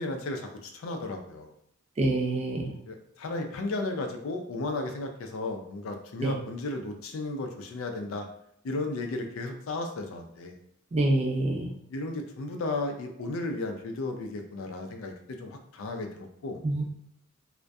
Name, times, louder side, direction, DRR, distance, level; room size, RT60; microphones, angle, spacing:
voice 1, 0.0-1.5 2.9-8.3 8.6-10.5 11.9-16.6, left 2 dB, 70° left, 4 dB, 0.4 m, -34 dB
voice 2, 2.0-2.7 6.2-6.4 10.9-11.7 16.6-16.8, right 2 dB, 30° right, 1 dB, 0.4 m, -26 dB
2.6 x 2.1 x 2.2 m, 0.74 s
head